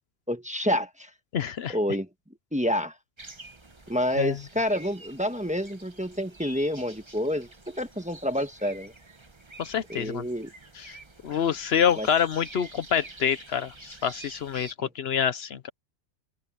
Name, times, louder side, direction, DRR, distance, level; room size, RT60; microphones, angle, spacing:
voice 1, 0.3-1.1 1.7-2.1 2.5-2.9 3.9-8.9 9.9-10.5 12.0-12.1 14.8-14.9, equal, 5° right, 1.3 m, -28 dB
voice 2, 1.3-1.8 4.2-4.4 9.6-10.2 10.8-11.0 11.2-15.7, left 8 dB, 70° left, 0.9 m, -27 dB
sound 1, 3.2-14.7, right 2 dB, 25° right, 1.3 m, -48 dB
open air
omnidirectional pair, 1.1 m